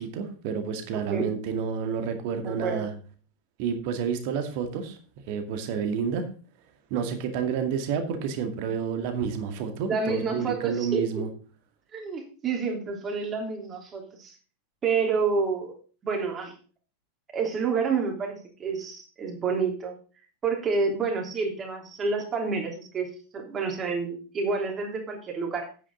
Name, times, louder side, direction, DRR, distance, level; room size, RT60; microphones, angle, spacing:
voice 1, 0.0-2.9 3.6-5.0 5.3-6.3 6.9-11.3, right 6 dB, 45° right, 7 dB, 2.2 m, -29 dB
voice 2, 2.4-2.9 9.9-11.3 11.9-14.3 14.8-15.7 16.0-16.5 17.3-19.9 20.4-23.1 23.3-25.7, right 5 dB, 25° right, 2 dB, 3.3 m, -28 dB
9.9 x 9.3 x 3.9 m, 0.37 s
figure-of-eight pair, 90°, 0 cm